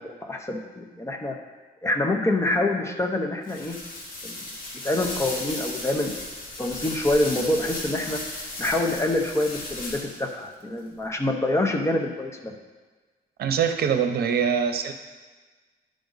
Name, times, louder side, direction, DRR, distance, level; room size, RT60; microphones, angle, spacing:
voice 1, 0.2-1.4 1.8-3.7 4.2-4.5 4.8-6.1 6.6-12.5, left 2 dB, 15° left, 2 dB, 0.8 m, -26 dB
sound 1, 3.4-10.3, left 2 dB, 55° left, 2.1 m, -35 dB
voice 2, 13.4-14.9, right 7 dB, 75° right, 7 dB, 0.7 m, -23 dB
10.5 x 5.0 x 3.9 m, 1.3 s
wide cardioid pair, 145°, 16 cm